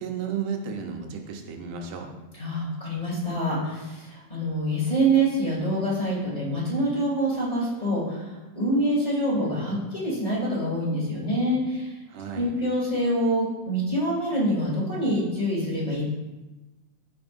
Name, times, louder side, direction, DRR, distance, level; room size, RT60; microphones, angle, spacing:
voice 1, 0.0-2.1 12.1-12.5, right 6 dB, 80° right, 2 dB, 2.4 m, -33 dB
voice 2, 2.3-12.0 12.3-16.0, right 1 dB, 15° left, -8 dB, 2.4 m, -26 dB
13.0 x 5.3 x 2.6 m, 1.1 s
omnidirectional pair, 3.6 m